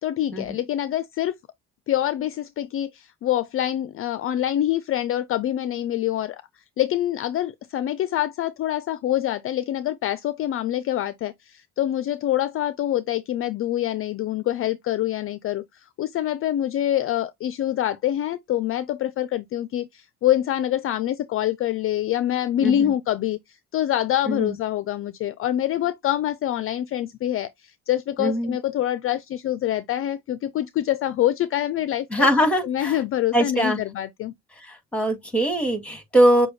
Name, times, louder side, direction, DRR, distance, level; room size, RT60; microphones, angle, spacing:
voice 1, 0.0-1.3 1.9-6.4 6.8-32.3 32.6-34.3, left 12 dB, 45° left, 0.4 m, -25 dB
voice 2, 28.2-28.5 32.1-32.9 33.3-33.8 34.7-36.5, equal, 5° left, 1.9 m, -21 dB
6.7 x 2.2 x 3.0 m
cardioid pair, 100°, 32 cm